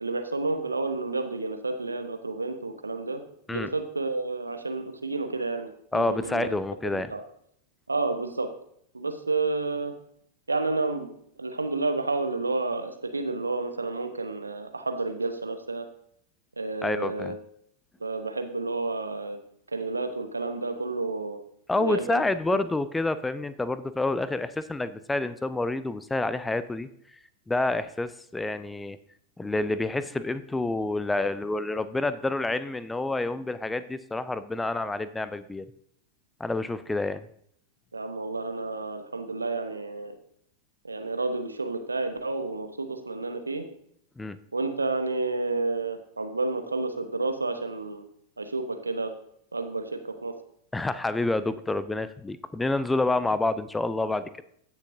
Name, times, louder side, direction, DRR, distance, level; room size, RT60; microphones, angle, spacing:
voice 1, 0.0-3.2 3.5-6.5 6.9-7.2 7.9-8.5 8.9-9.9 10.5-11.1 11.4-15.9 16.6-17.4 18.0-19.4 19.7-21.4 21.8-22.2 22.5-22.6 37.9-40.1 40.8-43.6 44.5-48.0 48.4-49.1 49.5-50.3, right 3 dB, 80° right, 7 dB, 0.9 m, -30 dB
voice 2, 5.9-7.1 16.8-17.4 21.7-26.9 27.5-29.0 29.4-35.7 36.4-37.2 44.2-44.4 50.7-54.4, left 2 dB, 10° left, 14 dB, 0.4 m, -28 dB
15.0 x 6.4 x 2.6 m, 0.69 s
figure-of-eight pair, 90°, 0 cm